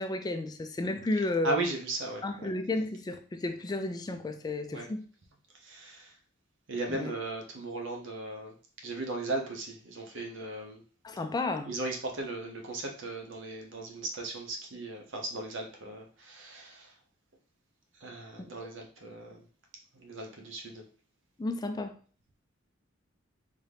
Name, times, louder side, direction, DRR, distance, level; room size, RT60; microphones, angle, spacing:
voice 1, 0.0-1.6 2.2-5.1 6.9-7.1 11.0-11.7 21.4-22.0, left 2 dB, 20° left, 0.3 m, -32 dB
voice 2, 1.4-2.5 4.7-4.9 5.6-6.1 6.7-8.5 8.8-10.8 11.6-16.9 18.0-19.4 19.9-20.8, right 2 dB, 65° right, 0.8 m, -37 dB
3.6 x 2.7 x 3.4 m
head